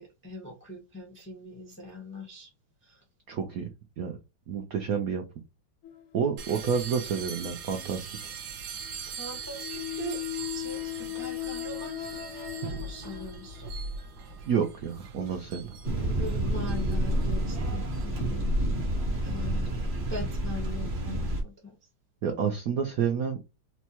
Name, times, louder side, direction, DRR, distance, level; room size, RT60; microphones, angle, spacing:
voice 1, 0.0-2.5 2.8-3.0 9.1-10.2 10.5-13.7 16.0-18.5 19.2-21.7, left 1 dB, 15° left, 0.4 m, -42 dB
voice 2, 3.3-3.6 4.0-4.1 4.5-5.2 6.1-8.3 14.5-15.7 22.2-23.4, right 7 dB, 85° right, 0.7 m, -29 dB
sound 1, 5.8-6.8 8.8-13.9 14.6-14.8 15.6-15.7, left 17 dB, 80° left, 1.5 m, -38 dB
sound 2, 6.4-18.0, right 5 dB, 65° right, 1.1 m, -41 dB
sound 3, 15.8-21.4, right 1 dB, 45° right, 0.8 m, -29 dB
4.4 x 2.2 x 2.8 m
omnidirectional pair, 2.3 m